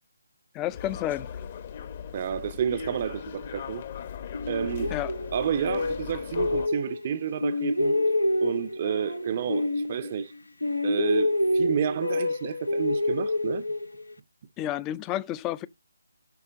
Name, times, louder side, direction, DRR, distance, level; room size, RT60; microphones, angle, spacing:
voice 1, 0.5-1.4 4.9-5.1 14.6-15.7, left 13 dB, 15° left, 0.5 m, -31 dB
sound 1, 0.7-6.7, left 7 dB, 35° left, 1.0 m, -38 dB
voice 2, 2.1-3.8 4.5-4.9 5.3-7.9 8.4-10.3 10.8-13.7, right 8 dB, 35° right, 0.6 m, -30 dB
sound 2, 4.3-7.1 7.4-10.4 10.6-14.1, left 1 dB, 80° left, 0.9 m, -27 dB
13.0 x 6.6 x 2.6 m
figure-of-eight pair, 145°, 0 cm